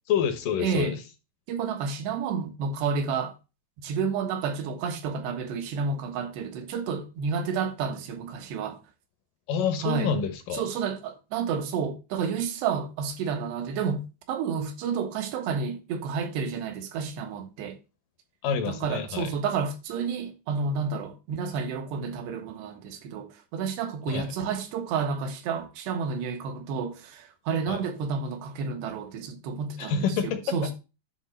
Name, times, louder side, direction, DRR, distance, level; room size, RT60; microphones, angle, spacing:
voice 1, 0.1-1.0 9.5-10.6 18.4-19.3 24.1-24.3 27.7-27.8 29.8-30.6, left 7 dB, 70° left, 2.2 m, -27 dB
voice 2, 0.6-1.0 1.5-3.3 3.8-8.8 9.8-10.1 10.5-17.8 18.7-30.2 30.5-30.7, right 5 dB, 75° right, 3.4 m, -30 dB
11.0 x 3.7 x 6.3 m
omnidirectional pair, 5.0 m